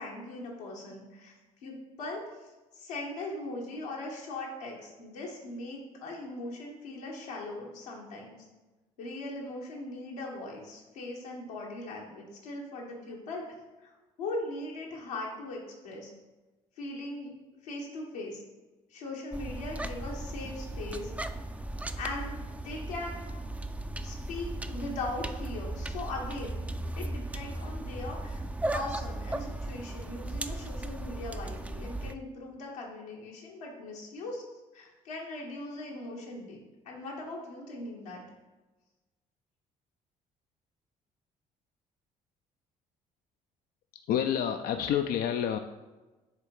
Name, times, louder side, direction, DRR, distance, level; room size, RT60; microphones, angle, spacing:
voice 1, 0.0-1.3 1.6-8.5 9.0-13.9 14.2-16.1 16.8-17.3 17.6-18.4 18.9-21.1 21.9-23.3 24.0-26.6 27.0-28.4 28.7-34.4 34.7-36.6 36.8-38.2, left 2 dB, 85° left, -2 dB, 1.3 m, -39 dB
sound 1, 19.3-32.1, right 1 dB, 10° right, 0.4 m, -36 dB
voice 2, 44.1-45.6, left 9 dB, 60° left, 7 dB, 0.4 m, -28 dB
6.7 x 3.7 x 4.6 m, 1.2 s
hypercardioid pair, 55°, 18 cm